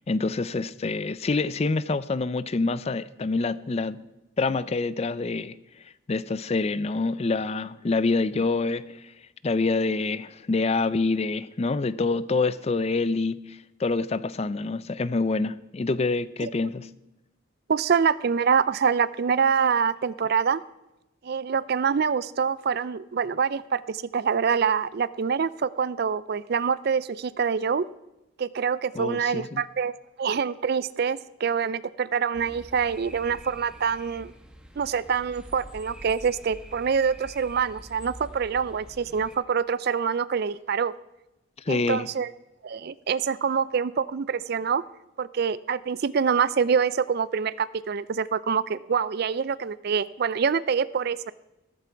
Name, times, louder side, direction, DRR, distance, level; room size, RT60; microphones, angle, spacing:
voice 1, 0.1-4.0 4.4-5.6 6.1-9.1 9.4-16.9 28.9-29.6 41.7-42.1, left 3 dB, 30° left, 0.4 m, -26 dB
voice 2, 17.7-20.6 21.2-27.9 28.4-29.9 30.2-34.3 34.8-40.9 41.7-42.3 42.6-44.8 45.2-51.3, right 6 dB, 50° right, 0.4 m, -25 dB
sound 1, 32.3-39.4, equal, 5° right, 1.2 m, -46 dB
15.0 x 14.0 x 4.6 m
head